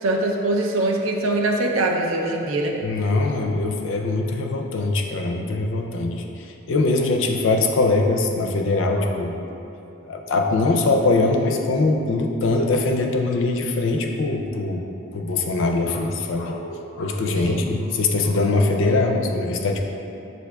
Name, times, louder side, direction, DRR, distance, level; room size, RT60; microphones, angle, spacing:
voice 1, 0.0-2.8 17.3-17.6, right 2 dB, 85° right, 1 dB, 0.5 m, -23 dB
voice 2, 2.8-6.2 6.7-9.4 10.1-14.9 15.1-19.8, left 2 dB, 70° left, 3 dB, 0.4 m, -22 dB
7.6 x 2.7 x 2.2 m, 2.9 s
head